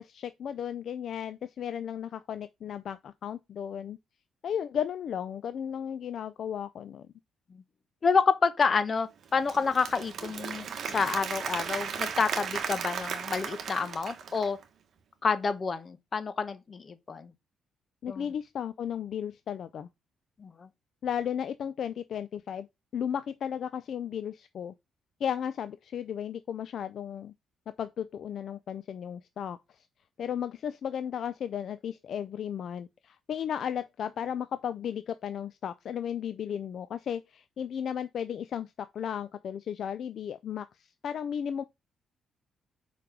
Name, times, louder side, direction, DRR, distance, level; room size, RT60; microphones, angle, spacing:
voice 1, 0.0-4.0 4.4-7.1 18.0-19.9 21.0-22.7 22.9-24.7 25.2-27.3 27.8-29.6 30.2-40.7 41.0-41.6, left 8 dB, 60° left, 0.4 m, -34 dB
voice 2, 8.0-14.6 15.2-17.3 18.1-18.3 20.4-20.7, left 5 dB, 40° left, 1.0 m, -28 dB
Applause / Crowd, 9.2-14.6, right 7 dB, 60° right, 1.2 m, -36 dB
5.1 x 4.7 x 5.1 m
cardioid pair, 90°, 0 cm